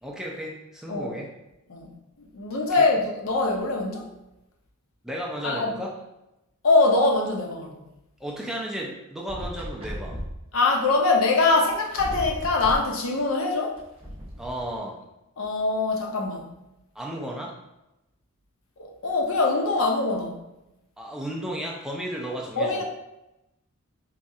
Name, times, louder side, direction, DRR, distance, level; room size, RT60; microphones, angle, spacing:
voice 1, 0.0-1.3 2.8-2.9 5.0-6.0 8.2-10.2 14.4-15.0 17.0-17.6 21.0-22.8, right 1 dB, ahead, -2 dB, 0.4 m, -34 dB
voice 2, 2.3-4.1 5.4-5.7 6.6-7.8 10.5-13.8 15.4-16.5 18.8-20.4 22.6-22.8, left 3 dB, 70° left, 1 dB, 0.6 m, -23 dB
sound 1, 9.3-10.4 11.4-11.5 11.7-12.9 13.8-14.6, equal, 25° right, 0.8 m, -35 dB
4.1 x 2.3 x 2.6 m, 0.92 s
head